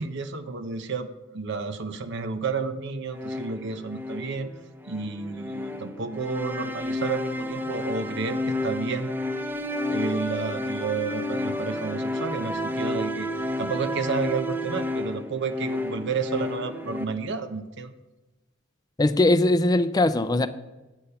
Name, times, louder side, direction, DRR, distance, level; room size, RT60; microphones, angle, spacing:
voice 1, 0.0-4.5 4.8-9.2 9.9-13.3 13.6-17.9, right 4 dB, 60° right, 9 dB, 0.7 m, -31 dB
sound 1, 3.1-17.1, left 1 dB, 10° right, 0.7 m, -31 dB
voice 2, 19.0-20.5, left 2 dB, 20° left, 12 dB, 0.4 m, -20 dB
8.7 x 8.1 x 5.5 m, 1.1 s
head